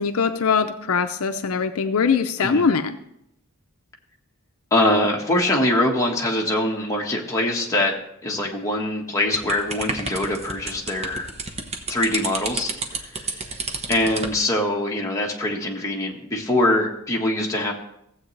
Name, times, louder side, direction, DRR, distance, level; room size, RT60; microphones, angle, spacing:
voice 1, 0.0-3.0, left 5 dB, 80° left, 8 dB, 0.5 m, -22 dB
voice 2, 4.7-7.9 8.2-11.3 11.9-12.7 13.9-17.7, left 1 dB, 15° left, -2 dB, 1.4 m, -23 dB
sound 1, 9.3-14.4, right 3 dB, 30° right, 1.0 m, -31 dB
15.5 x 7.9 x 3.2 m, 0.78 s
head